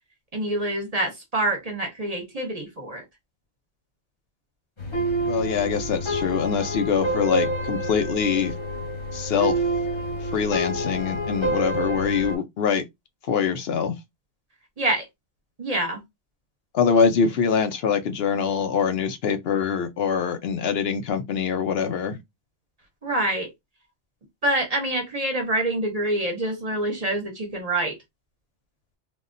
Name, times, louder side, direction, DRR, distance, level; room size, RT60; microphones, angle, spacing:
voice 1, 0.3-3.0 14.8-15.0 15.6-16.0 23.0-23.5 24.4-28.0, right 1 dB, 40° right, 0.7 m, -26 dB
sound 1, 4.8-12.4, right 1 dB, 30° left, 0.9 m, -28 dB
voice 2, 5.2-8.5 9.1-9.6 10.2-12.8 13.3-13.9 16.7-22.2, left 6 dB, 65° left, 0.8 m, -24 dB
3.4 x 2.2 x 2.5 m
omnidirectional pair, 1.2 m